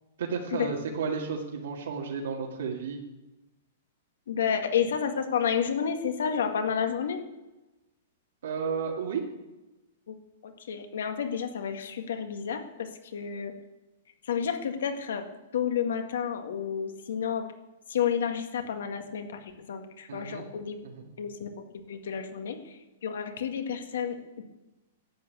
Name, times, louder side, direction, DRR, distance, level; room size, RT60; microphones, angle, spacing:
voice 1, 0.2-3.0 8.4-9.2 20.1-20.5 20.8-21.0, right 6 dB, 80° right, -2 dB, 2.1 m, -32 dB
voice 2, 4.3-7.2 10.1-10.2 10.4-13.5 14.3-15.2 15.5-17.4 17.9-19.4 19.7-20.8 21.2-21.5 21.9-22.7 23.0-24.4, left 7 dB, 80° left, 6 dB, 1.9 m, -30 dB
12.0 x 8.4 x 8.3 m, 1.0 s
hypercardioid pair, 175°, 0 cm